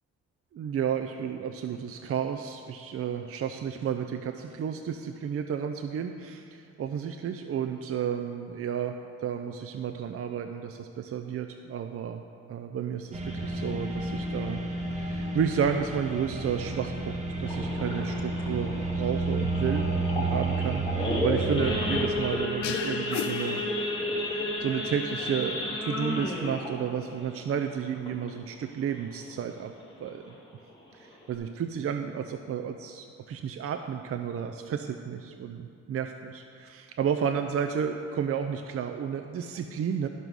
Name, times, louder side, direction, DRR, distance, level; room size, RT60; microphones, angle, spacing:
voice 1, 0.5-12.2 12.5-14.6 15.0-19.9 20.1-23.6 24.3-29.7 30.0-30.3 31.3-40.1, right 8 dB, 50° right, 6 dB, 0.6 m, -32 dB
sound 1, 13.1-22.1, right 2 dB, 25° right, 1.7 m, -31 dB
Idling / Accelerating revving vroom / Sawing, 17.5-28.5 28.9-29.1 29.4-29.5 30.0-30.2 30.7-30.8 31.0-31.4, left 1 dB, 15° left, 2.5 m, -32 dB
sound 2, 22.6-24.4, left 12 dB, 75° left, 0.5 m, -37 dB
12.5 x 5.3 x 6.2 m, 2.7 s
cardioid pair, 90°, 30 cm